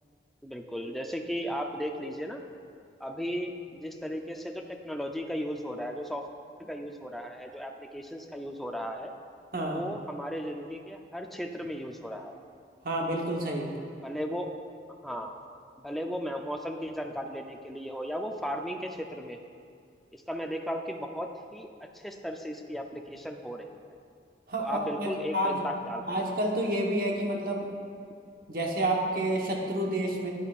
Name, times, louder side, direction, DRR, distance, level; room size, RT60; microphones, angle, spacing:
voice 1, 0.4-2.4 3.0-6.3 6.6-9.1 9.7-12.4 14.0-14.5 15.0-15.4 15.8-19.4 20.1-23.8 24.6-26.1, equal, ahead, 3 dB, 0.4 m, -36 dB
voice 2, 9.5-9.8 12.8-13.7 24.5-25.6 26.1-27.8 28.5-30.3, right 1 dB, 55° right, 0 dB, 1.1 m, -29 dB
10.0 x 9.7 x 2.4 m, 2.3 s
head